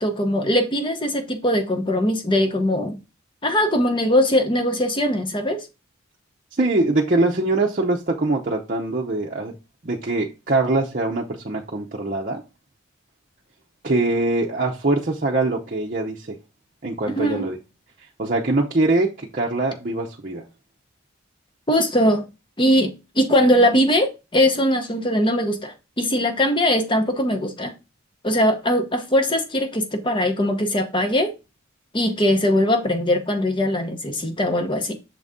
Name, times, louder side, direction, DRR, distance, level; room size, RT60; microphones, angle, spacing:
voice 1, 0.0-3.0 3.4-5.7 17.2-17.5 21.7-22.2 22.6-27.7 28.2-31.3 31.9-34.9, equal, 25° left, 0.8 m, -21 dB
voice 2, 6.6-9.5 9.8-12.4 13.8-16.4 16.8-17.6 18.2-20.4, right 2 dB, 40° right, 0.7 m, -23 dB
6.7 x 3.9 x 3.6 m
head